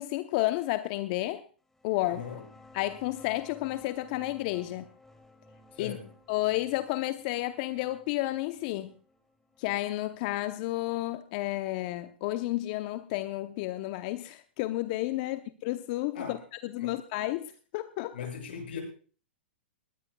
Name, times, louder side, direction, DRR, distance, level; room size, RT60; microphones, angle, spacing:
voice 1, 0.0-1.4 1.8-2.2 2.7-4.8 5.8-6.0 6.3-8.9 9.6-16.4 16.7-18.1, left 17 dB, 50° left, 10 dB, 0.8 m, -31 dB
sound 1, 1.7-11.0, left 1 dB, 5° left, 2.7 m, -55 dB
voice 2, 2.0-2.4 5.7-6.1 15.2-15.4 16.1-16.4 16.8-17.0 18.1-18.8, left 7 dB, 70° left, 3 dB, 7.0 m, -39 dB
20.5 x 17.0 x 2.3 m, 0.39 s
hypercardioid pair, 115°, 6 cm